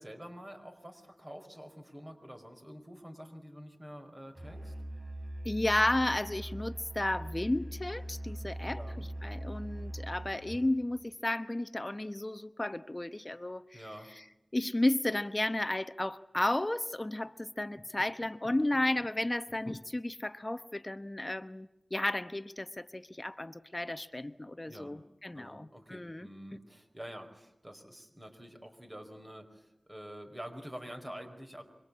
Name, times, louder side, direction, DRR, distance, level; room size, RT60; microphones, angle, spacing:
voice 1, 0.0-4.7 8.7-9.0 13.7-14.1 24.6-24.9 25.3-31.6, equal, 20° right, 5 dB, 4.9 m, -47 dB
Musical instrument, 4.4-10.7, right 1 dB, 55° right, 6.7 m, -41 dB
voice 2, 5.4-8.8 9.2-13.8 14.1-14.2 14.5-26.3, left 1 dB, 30° left, 12 dB, 0.9 m, -33 dB
27.0 x 25.0 x 8.6 m, 0.91 s
wide cardioid pair, 45°, 0 cm